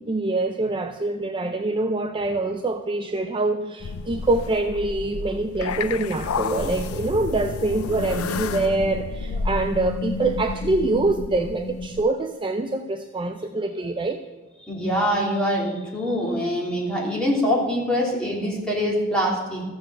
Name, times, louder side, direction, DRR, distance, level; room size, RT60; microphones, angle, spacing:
voice 1, 0.1-14.2, right 2 dB, 25° right, 7 dB, 0.5 m, -25 dB
sound 1, 3.8-12.0, left 4 dB, 90° left, 0.5 m, -30 dB
voice 2, 14.6-19.6, equal, 5° left, -4 dB, 3.3 m, -24 dB
14.0 x 7.1 x 7.7 m, 1.2 s
head